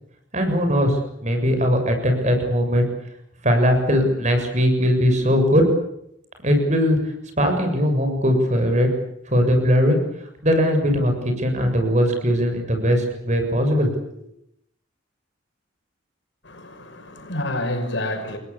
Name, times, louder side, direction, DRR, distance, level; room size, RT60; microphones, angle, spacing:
voice 1, 0.3-0.9 1.2-2.8 3.4-5.6 6.4-7.0 7.4-8.9 9.3-10.0 10.4-14.2, equal, 40° right, 7.1 m, -19 dB
voice 2, 16.4-18.4, left 1 dB, 75° left, 6.2 m, -28 dB
29.0 x 21.5 x 8.4 m
head